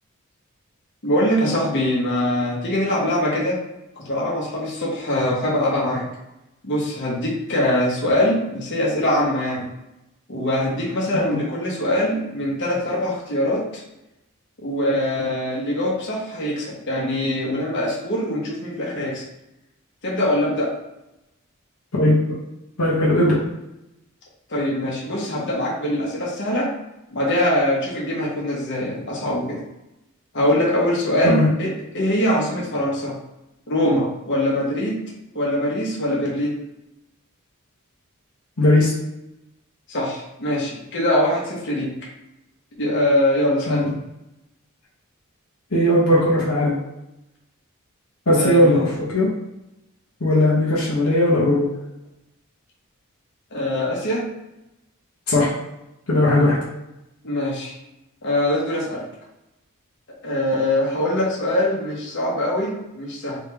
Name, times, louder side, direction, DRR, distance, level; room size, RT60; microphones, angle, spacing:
voice 1, 1.0-3.6 4.0-6.0 6.6-9.7 10.3-13.8 14.6-19.2 20.0-20.7 24.5-26.7 27.1-29.6 30.3-33.2 33.7-35.0 35.3-36.6 39.9-41.9 42.8-43.9 48.4-48.8 53.5-54.3 57.2-57.7 58.2-59.0 60.2-63.4, left 1 dB, 55° left, -4 dB, 1.3 m, -23 dB
voice 2, 22.8-23.4 31.2-31.5 38.6-38.9 43.7-43.8 45.7-46.8 48.3-49.3 50.2-51.7 55.3-55.5 56.1-56.6, left 1 dB, 75° left, -6 dB, 1.1 m, -18 dB
3.6 x 3.5 x 3.4 m, 0.91 s
head